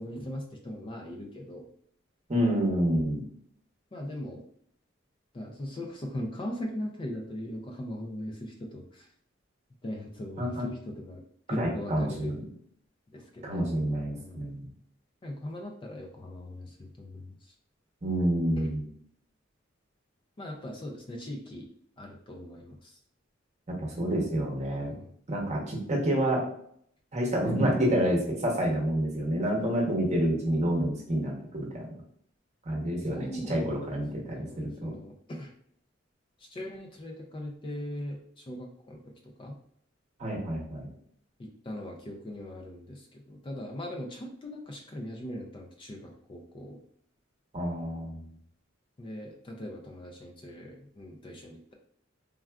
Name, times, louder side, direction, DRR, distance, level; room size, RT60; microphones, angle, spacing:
voice 1, 0.0-1.7 3.9-4.4 5.3-9.1 9.8-11.2 11.5-12.4 13.1-13.7 14.2-14.4 15.2-17.5 18.5-18.7 20.4-21.7 22.0-23.0 24.8-25.1 33.1-33.8 34.2-35.5 36.4-39.6 41.4-46.8 49.0-51.7, left 1 dB, 25° left, 1 dB, 0.3 m, -40 dB
voice 2, 2.3-3.2 10.4-10.7 11.5-12.4 13.4-14.7 18.0-18.8 23.7-24.9 25.3-26.4 27.1-31.9 32.7-34.9 40.2-40.9 47.5-48.2, right 1 dB, 35° right, -1 dB, 0.8 m, -28 dB
3.5 x 2.3 x 2.2 m, 0.64 s
head